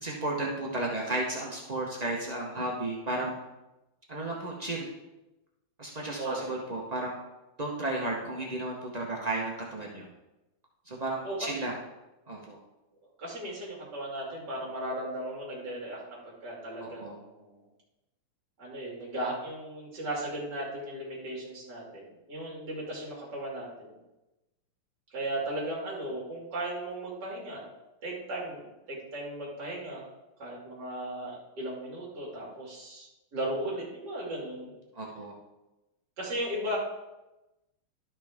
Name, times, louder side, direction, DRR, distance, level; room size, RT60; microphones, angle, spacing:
voice 1, 0.0-3.4 4.1-4.9 5.8-7.2 7.6-10.0 10.9-11.7 12.3-12.6 16.8-17.1 34.9-35.3, right 2 dB, 75° right, -2 dB, 0.3 m, -33 dB
voice 2, 6.2-6.5 11.2-11.7 13.2-17.6 18.6-24.0 25.1-27.6 28.0-30.1 30.4-34.7 36.2-36.8, right 1 dB, 50° right, -5 dB, 3.0 m, -36 dB
11.5 x 5.9 x 3.5 m, 1.0 s
omnidirectional pair, 2.4 m